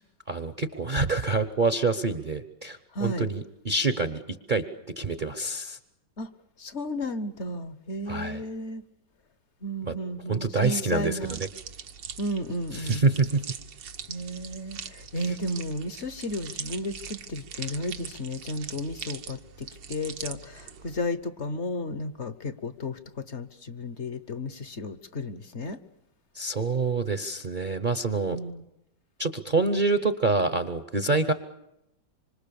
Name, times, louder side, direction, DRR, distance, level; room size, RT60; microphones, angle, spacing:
voice 1, 0.3-4.2 4.5-4.6 5.0-5.8 8.1-8.4 9.8-9.9 10.3-11.5 12.7-13.4 26.3-28.4 29.2-31.3, right 3 dB, 35° right, 11 dB, 0.9 m, -26 dB
voice 2, 2.9-3.3 6.2-6.3 6.6-8.8 9.6-11.4 12.2-13.0 14.1-25.8 28.3-28.6, left 1 dB, 45° left, 13 dB, 1.2 m, -33 dB
sound 1, 11.2-21.1, right 7 dB, 85° right, 1.9 m, -41 dB
26.5 x 26.0 x 7.0 m, 0.87 s
omnidirectional pair, 1.9 m